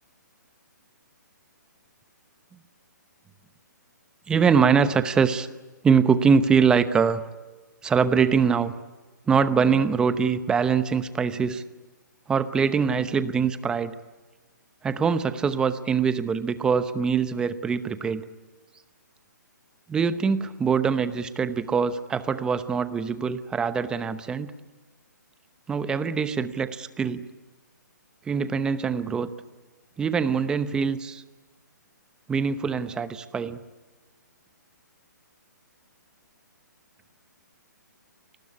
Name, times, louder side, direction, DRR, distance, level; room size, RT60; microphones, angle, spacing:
voice 1, 4.3-5.5 5.8-7.2 7.8-8.7 9.3-11.6 12.3-13.9 14.8-18.2 19.9-24.5 25.7-27.3 28.3-29.3 30.0-31.2 32.3-33.6, right 6 dB, 10° right, 13 dB, 0.8 m, -23 dB
27.5 x 20.0 x 9.7 m, 1.2 s
hypercardioid pair, 155°, 10 cm